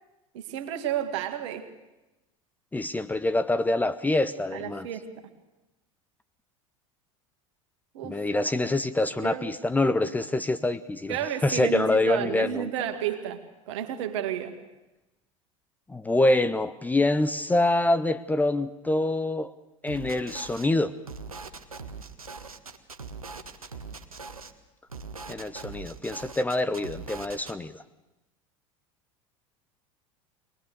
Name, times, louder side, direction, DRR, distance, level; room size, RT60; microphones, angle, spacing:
voice 1, 0.3-1.7 4.5-5.1 7.9-8.2 9.2-9.5 11.1-14.6, right 9 dB, 55° right, 7 dB, 2.1 m, -31 dB
voice 2, 2.7-4.9 8.0-12.7 15.9-19.5 19.8-20.9 25.3-27.8, left 2 dB, 10° left, 11 dB, 0.7 m, -25 dB
sound 1, 19.9-20.7 21.0-24.5 24.9-27.5, right 4 dB, 80° right, 1.2 m, -41 dB
22.5 x 20.0 x 6.8 m, 1.0 s
figure-of-eight pair, 75°, 18 cm